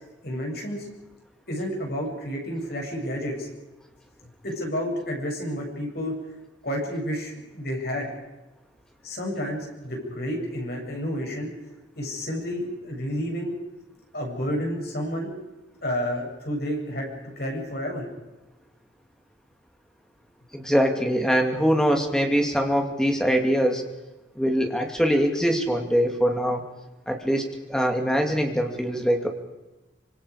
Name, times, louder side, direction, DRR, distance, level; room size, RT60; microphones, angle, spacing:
voice 1, 0.2-0.9 1.5-3.5 4.4-6.1 6.6-8.1 9.0-11.5 12.0-13.5 14.1-15.3 15.8-17.1 17.4-18.1, equal, 55° left, 0 dB, 7.6 m, -30 dB
voice 2, 20.5-23.8 24.4-26.6 27.1-27.4 27.7-29.3, equal, 5° left, 3 dB, 2.5 m, -23 dB
25.5 x 25.5 x 5.0 m, 1.1 s
head